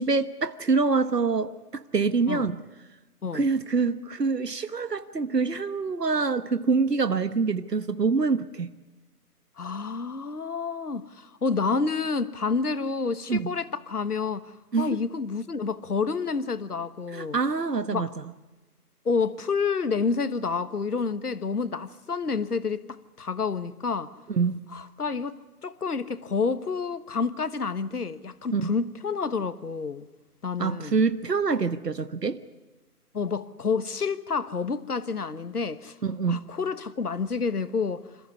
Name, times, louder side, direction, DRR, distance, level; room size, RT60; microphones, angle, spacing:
voice 1, 0.0-2.5 3.3-8.7 13.3-13.5 14.7-15.0 17.1-18.3 24.3-24.6 28.5-28.7 30.6-32.4 36.0-36.4, right 4 dB, 85° right, 1.4 m, -25 dB
voice 2, 9.6-17.4 17.9-18.1 19.0-24.1 24.7-25.4 25.6-30.1 30.4-31.0 33.1-36.0 36.3-38.1, left 5 dB, 70° left, 1.5 m, -29 dB
27.0 x 15.0 x 9.7 m
figure-of-eight pair, 160°, 47 cm